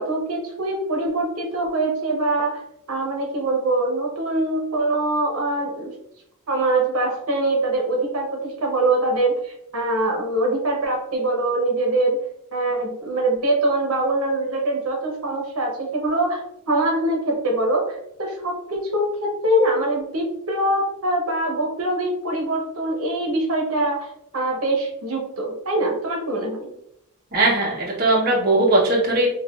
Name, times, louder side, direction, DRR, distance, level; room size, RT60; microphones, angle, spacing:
voice 1, 0.0-2.6 2.9-5.9 6.5-12.2 12.5-24.1 24.3-26.7, right 2 dB, 70° right, 0 dB, 0.9 m, -23 dB
voice 2, 27.3-29.3, right 2 dB, 45° right, -4 dB, 0.9 m, -19 dB
5.6 x 2.4 x 2.3 m, 0.78 s
head